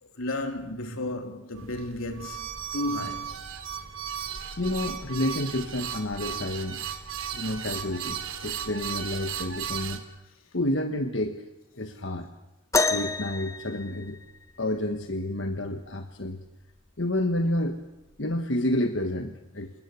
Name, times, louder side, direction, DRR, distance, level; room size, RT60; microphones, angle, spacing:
voice 1, 0.0-3.4, left 2 dB, 85° left, 3.1 m, -33 dB
sound 1, 1.5-10.0, right 8 dB, 80° right, 2.6 m, -36 dB
voice 2, 4.6-6.8 7.3-10.0 10.5-11.4 11.8-12.3 12.9-14.2 14.6-16.4 17.0-17.8 18.2-19.7, left 1 dB, 60° left, 1.5 m, -29 dB
sound 2, 12.7-14.6 16.3-16.4 17.2-17.4 18.3-18.4, left 3 dB, 15° left, 0.9 m, -28 dB
28.0 x 19.5 x 8.3 m
head